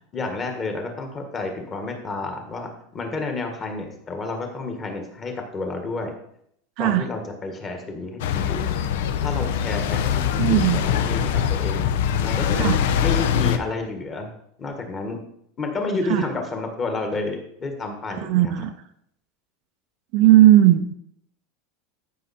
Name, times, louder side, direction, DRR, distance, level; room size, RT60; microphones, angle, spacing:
voice 1, 0.0-6.1 6.8-8.7 9.2-11.9 12.2-14.3 14.6-15.2 15.6-18.6, left 3 dB, 20° left, 4 dB, 1.5 m, -30 dB
sound 1, 8.2-13.6, left 8 dB, 75° left, 0.8 m, -23 dB
voice 2, 10.4-10.8 12.6-12.8 16.1-16.2 18.2-18.7 20.1-20.9, right 13 dB, 45° right, 8 dB, 0.6 m, -16 dB
14.0 x 5.6 x 4.2 m, 0.71 s
supercardioid pair, 170°, 0 cm